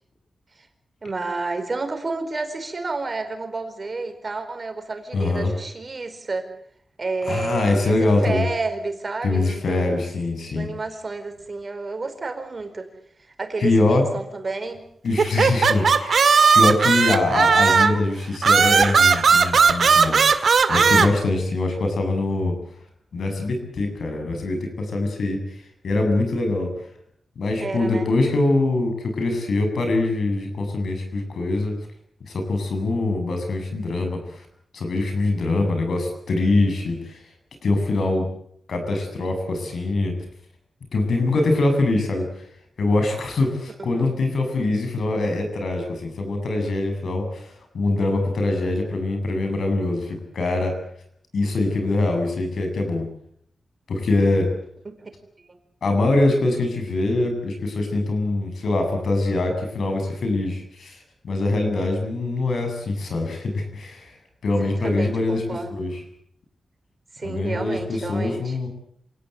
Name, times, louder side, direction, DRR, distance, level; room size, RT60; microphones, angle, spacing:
voice 1, 1.0-6.5 7.0-10.1 10.5-12.9 13.3-14.9 27.6-28.1 43.7-44.2 54.8-55.1 55.4-55.6 64.5-65.8 67.1-68.6, right 3 dB, 35° right, 7 dB, 4.6 m, -30 dB
voice 2, 5.1-5.5 7.3-8.5 9.2-10.7 13.6-14.0 15.0-22.5 23.1-25.4 25.8-26.7 27.4-31.7 32.2-34.2 34.7-37.2 37.6-38.3 38.7-40.2 40.9-42.3 42.8-47.5 47.7-50.8 51.3-53.0 53.9-54.5 55.8-60.9 61.2-64.1 64.4-66.0 67.2-68.7, left 2 dB, 75° left, 5 dB, 7.9 m, -23 dB
sound 1, 15.2-18.0 18.4-21.1, right 5 dB, 60° right, 2.0 m, -16 dB
27.5 x 18.0 x 8.2 m, 0.68 s
wide cardioid pair, 105°, 0 cm